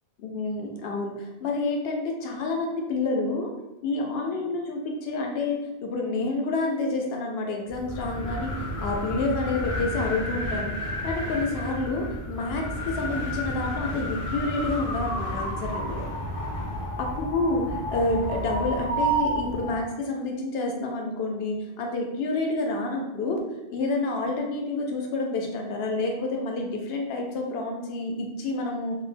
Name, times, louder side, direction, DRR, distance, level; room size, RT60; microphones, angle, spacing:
voice 1, 0.2-3.5 3.8-8.5 8.8-10.7 11.0-16.1 17.2-23.4 23.7-29.0, left 2 dB, 75° left, 1 dB, 0.8 m, -28 dB
sound 1, 7.7-19.8, equal, 45° left, 0.5 m, -31 dB
2.5 x 2.1 x 3.2 m, 0.97 s
omnidirectional pair, 1.0 m